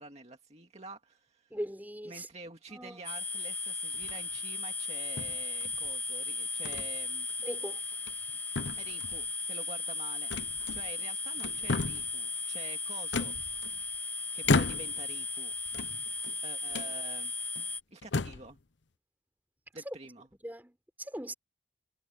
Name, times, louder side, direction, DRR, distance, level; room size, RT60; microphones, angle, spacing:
voice 1, 0.0-1.5 2.0-7.3 8.8-10.4 10.7-13.3 14.3-15.6 16.4-17.3 17.9-18.6 19.7-20.3, right 2 dB, 35° right, 2.2 m, -48 dB
voice 2, 1.5-2.3 2.7-3.0 7.4-7.8 19.8-20.0 20.4-21.3, equal, 10° right, 4.9 m, -40 dB
sound 1, 3.0-17.8, left 3 dB, 10° left, 2.0 m, -36 dB
sound 2, 3.9-4.4 5.2-5.9 6.7-6.9 7.3-7.4 7.9-8.3 8.6-9.3 10.3-11.0 11.4-12.2 13.1-14.0 14.4-15.1 15.7-16.3 16.7-16.9 17.6-17.7 18.0-18.5, left 3 dB, 80° left, 0.8 m, -33 dB
head